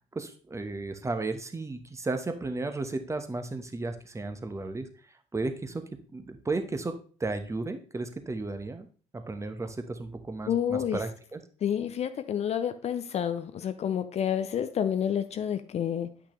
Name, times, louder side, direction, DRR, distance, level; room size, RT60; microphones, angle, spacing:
voice 1, 0.1-4.9 5.3-5.8 6.1-8.9 9.1-11.4, right 3 dB, 20° right, 7 dB, 1.1 m, -34 dB
voice 2, 10.5-11.0 11.6-16.1, left 9 dB, 45° left, 11 dB, 0.6 m, -29 dB
8.5 x 6.0 x 3.2 m, 0.40 s
hypercardioid pair, 55°, 15 cm